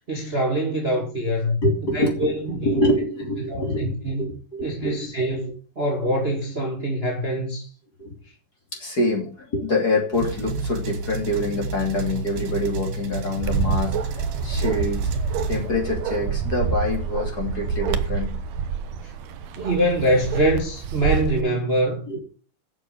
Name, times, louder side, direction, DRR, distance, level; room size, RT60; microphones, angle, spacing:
voice 1, 0.1-1.6 1.9-2.8 3.5-4.3 4.6-7.7 19.0-19.1 19.6-22.1, right 1 dB, 20° right, 2.0 m, -24 dB
voice 2, 1.6-5.1 8.0-8.1 8.7-15.1 15.5-18.3 22.1-22.2, left 1 dB, 30° left, 3.1 m, -26 dB
sound 1, 10.1-15.7, right 4 dB, 90° right, 3.3 m, -30 dB
Bark, 13.4-21.4, right 6 dB, 70° right, 1.8 m, -27 dB
8.9 x 7.0 x 8.0 m
omnidirectional pair, 3.9 m